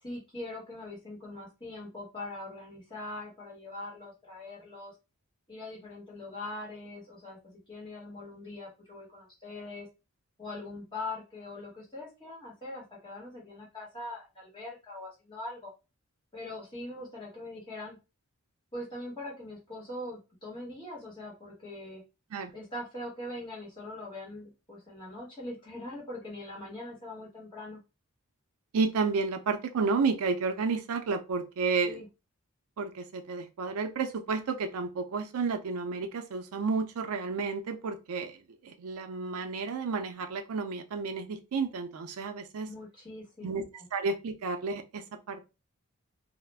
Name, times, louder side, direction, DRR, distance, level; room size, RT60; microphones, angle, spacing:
voice 1, 0.0-4.9 5.5-9.9 10.4-15.7 16.3-18.0 18.7-22.0 22.5-27.8 31.8-32.1 42.7-43.5 43.7-43.9, left 2 dB, 20° left, -5 dB, 1.2 m, -42 dB
voice 2, 28.7-32.0 32.8-42.7 43.4-43.6 43.9-45.4, right 4 dB, 85° right, 7 dB, 0.4 m, -31 dB
2.4 x 2.0 x 3.3 m, 0.28 s
head